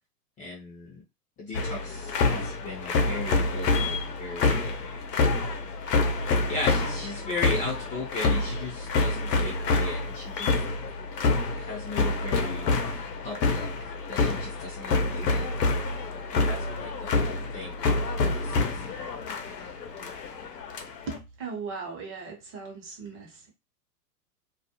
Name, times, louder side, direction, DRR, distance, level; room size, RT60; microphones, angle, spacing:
voice 1, 0.4-1.0 1.4-4.7 5.8-5.9 6.5-10.5 11.5-12.7 13.2-15.5 16.3-17.9 18.3-19.1, left 3 dB, 15° left, -3 dB, 0.6 m, -37 dB
sound 1, 1.5-21.2, left 3 dB, 80° left, 0.8 m, -27 dB
voice 2, 21.1-23.5, right 4 dB, 25° right, 1 dB, 0.8 m, -38 dB
2.4 x 2.0 x 2.7 m, 0.24 s
hypercardioid pair, 115°, 47 cm